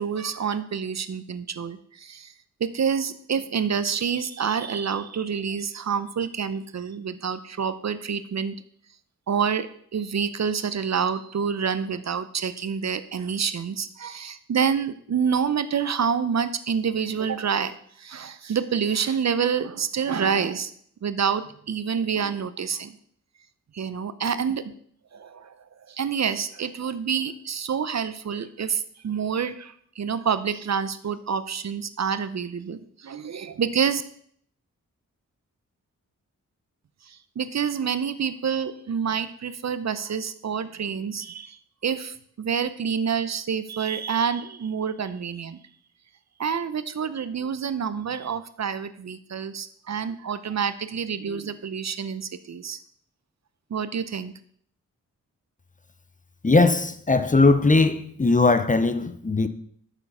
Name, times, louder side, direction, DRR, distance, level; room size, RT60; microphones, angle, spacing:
voice 1, 0.0-2.3 2.6-8.6 9.3-9.7 9.9-20.7 21.0-23.0 23.7-24.7 25.1-25.5 25.9-34.0 37.1-45.6 46.4-52.8 53.7-54.3, right 7 dB, 50° right, 0.7 m, -27 dB
voice 2, 56.4-59.5, left 3 dB, 25° left, 0.7 m, -19 dB
7.2 x 6.8 x 5.4 m
cardioid pair, 45°, 34 cm